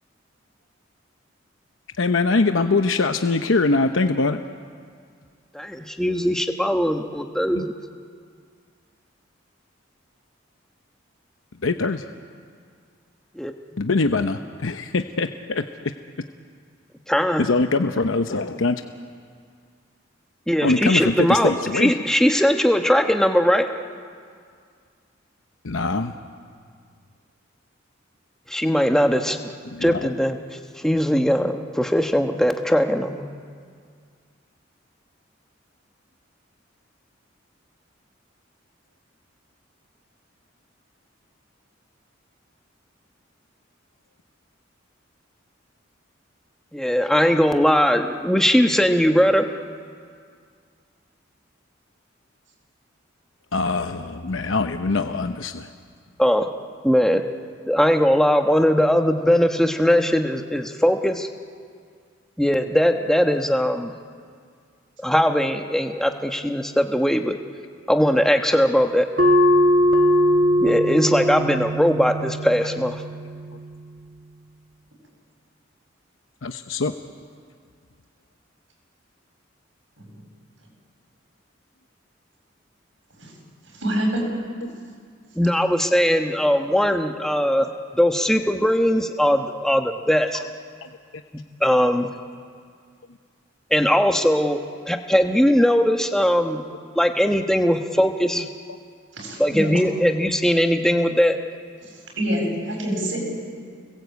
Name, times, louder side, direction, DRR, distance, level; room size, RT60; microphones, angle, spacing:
voice 1, 2.0-4.4 7.6-7.7 11.6-12.0 13.8-15.9 17.4-18.8 20.6-21.9 25.6-26.1 29.7-30.1 53.5-55.7 76.4-76.9 84.6-84.7 90.3-90.5 90.8-90.9, left 3 dB, 85° left, 7 dB, 0.9 m, -23 dB
voice 2, 5.5-7.7 13.3-13.5 17.1-17.4 20.5-23.7 28.5-29.5 29.8-33.2 46.7-49.5 56.2-56.5 56.8-57.2 57.7-61.3 62.4-63.9 65.0-67.4 67.9-69.1 70.6-73.0 85.4-90.4 91.6-92.1 93.7-94.6 94.9-96.6 96.9-98.5 99.4-101.4, equal, 5° left, 5 dB, 1.2 m, -20 dB
sound 1, 69.2-74.3, equal, 45° right, 1.3 m, -21 dB
voice 3, 83.7-84.2 99.1-99.7 102.2-103.2, right 1 dB, 75° right, 0 dB, 8.0 m, -25 dB
30.0 x 21.0 x 8.3 m, 2.1 s
head